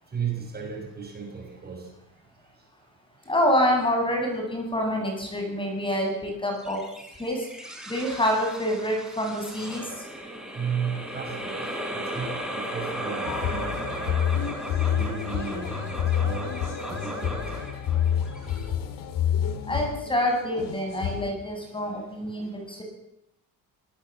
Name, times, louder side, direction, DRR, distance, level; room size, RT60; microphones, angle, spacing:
voice 1, 0.1-1.9 10.5-14.3 14.9-17.7, right 6 dB, 30° right, 2 dB, 6.0 m, -35 dB
voice 2, 3.3-6.8 7.2-7.4 7.9-9.9 19.7-22.8, equal, 15° left, 2 dB, 7.6 m, -26 dB
sound 1, 6.6-19.2, right 1 dB, ahead, 5.4 m, -36 dB
sound 2, 13.3-21.3, left 9 dB, 70° left, 2.7 m, -28 dB
25.0 x 19.0 x 7.6 m, 0.82 s
cardioid pair, 135°, 34 cm